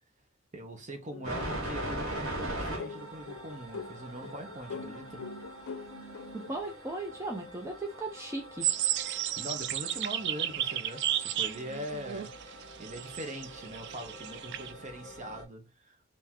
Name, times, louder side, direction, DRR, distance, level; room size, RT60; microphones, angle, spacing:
voice 1, 0.5-5.2 9.4-16.0, equal, 35° right, 1.0 m, -42 dB
sound 1, 1.1-6.6, left 4 dB, 85° left, 0.5 m, -44 dB
sound 2, 1.2-15.4, right 1 dB, 70° right, 1.8 m, -42 dB
voice 2, 6.3-8.7, right 2 dB, 15° right, 0.8 m, -37 dB
sound 3, 8.6-14.7, right 11 dB, 55° right, 0.4 m, -33 dB
4.4 x 2.9 x 3.7 m
head